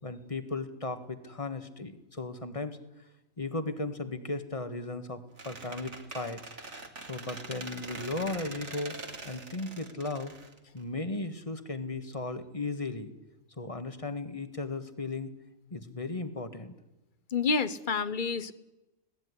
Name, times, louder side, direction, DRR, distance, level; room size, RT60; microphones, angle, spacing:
voice 1, 0.0-2.8 3.4-6.4 7.1-8.9 9.2-10.3 10.7-13.1 13.6-15.3 15.7-16.7, left 3 dB, 25° left, 9 dB, 1.8 m, -36 dB
Squeak, 5.4-11.2, right 3 dB, 55° right, 2.8 m, -44 dB
voice 2, 17.3-18.5, left 5 dB, 40° left, 15 dB, 1.1 m, -28 dB
25.5 x 18.0 x 9.8 m, 1.0 s
omnidirectional pair, 1.4 m